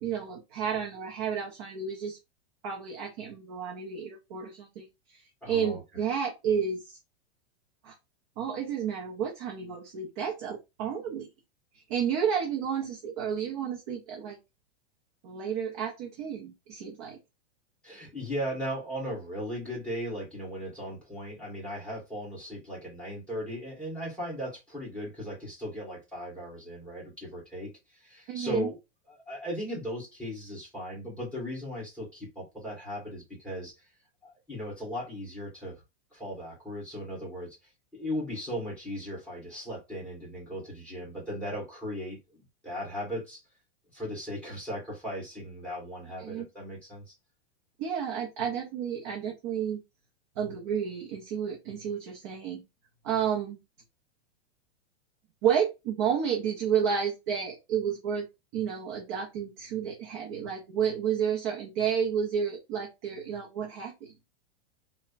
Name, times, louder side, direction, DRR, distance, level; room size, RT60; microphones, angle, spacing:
voice 1, 0.0-2.2 2.6-7.0 7.8-7.9 8.4-11.3 11.7-14.4 15.2-17.2 28.3-28.7 46.2-46.5 47.8-49.8 50.4-52.6 53.0-53.6 55.4-58.2 58.5-64.1, right 7 dB, 25° right, 0.4 m, -31 dB
voice 2, 5.4-6.0 17.8-28.8 29.1-33.9 34.2-35.8 36.1-37.6 37.9-43.4 43.9-47.1, equal, 5° left, 1.4 m, -37 dB
3.2 x 2.0 x 2.4 m
supercardioid pair, 155°, 34 cm